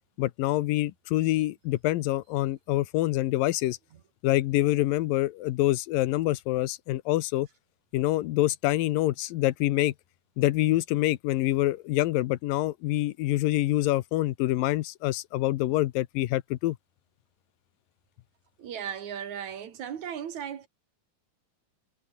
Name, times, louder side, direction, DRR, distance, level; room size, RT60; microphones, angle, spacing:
voice 1, 0.2-3.8 4.2-7.5 7.9-9.9 10.4-16.8, left 16 dB, 85° left, 2.6 m, -26 dB
voice 2, 18.6-20.7, right 9 dB, 60° right, 3.0 m, -36 dB
omnidirectional pair, 3.9 m